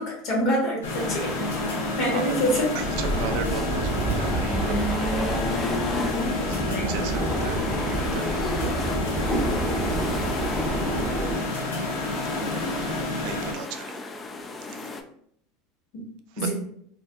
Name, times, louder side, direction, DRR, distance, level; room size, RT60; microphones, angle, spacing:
voice 1, 0.0-1.3 1.9-2.7 6.6-7.1 9.2-9.4 15.9-16.0 16.4-16.5, equal, 55° left, -1 dB, 1.1 m, -26 dB
sound 1, 0.8-13.5, left 2 dB, 85° left, 0.6 m, -30 dB
sound 2, 0.9-15.0, left 2 dB, 25° left, 0.3 m, -33 dB
voice 2, 2.0-2.4 2.7-5.6 6.5-7.6 7.9-8.4 11.3-11.6 12.6-14.0 14.7-14.9 16.4-16.5, right 6 dB, 65° right, 6 dB, 0.3 m, -37 dB
sound 3, 2.8-11.4, right 2 dB, 10° right, 0.7 m, -29 dB
2.4 x 2.4 x 2.3 m, 0.66 s
hypercardioid pair, 90°, 0 cm